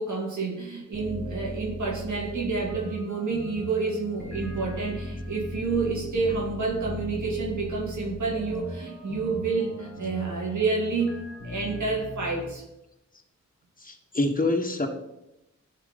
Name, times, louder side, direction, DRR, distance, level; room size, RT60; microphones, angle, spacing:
voice 1, 0.0-12.6, right 4 dB, 75° right, -2 dB, 2.0 m, -29 dB
sound 1, 0.9-12.5, left 1 dB, 50° right, 3.2 m, -38 dB
voice 2, 13.8-14.9, left 2 dB, 30° left, 3 dB, 1.4 m, -26 dB
11.0 x 4.5 x 4.1 m, 0.88 s
cardioid pair, 45°, 30 cm